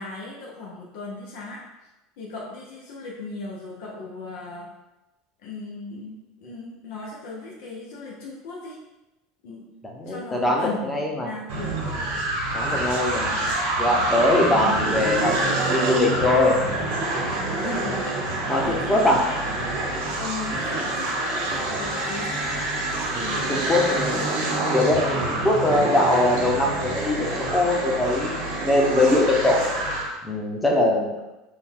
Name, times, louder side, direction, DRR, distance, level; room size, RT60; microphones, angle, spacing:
voice 1, 0.0-1.6 2.2-4.7 5.4-8.8 9.4-9.6 10.1-11.7 17.7-18.0 18.6-19.9 20.2-22.6, left 3 dB, 70° left, -3 dB, 0.7 m, -37 dB
voice 2, 9.9-11.3 12.5-13.5 13.8-16.6 17.6-18.0 18.5-19.3 19.5-19.7 23.1-25.2 25.4-29.6 30.2-31.1, left 1 dB, 10° left, -1 dB, 0.8 m, -22 dB
sound 1, 11.5-30.1, right 2 dB, 85° right, 1.2 m, -26 dB
3.7 x 2.3 x 4.4 m, 1.0 s
supercardioid pair, 120°, 0 cm